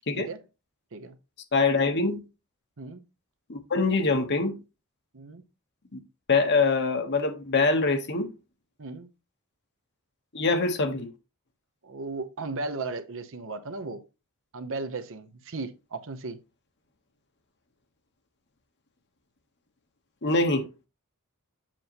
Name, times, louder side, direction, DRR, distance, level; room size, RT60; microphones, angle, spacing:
voice 1, 1.5-2.2 3.5-4.6 5.9-6.0 6.3-8.3 10.3-11.1 20.2-20.7, left 3 dB, 50° left, 1.2 m, -24 dB
voice 2, 8.8-9.1 11.8-14.0 14.5-16.4, right 3 dB, 60° right, 0.9 m, -36 dB
7.6 x 6.6 x 3.0 m
head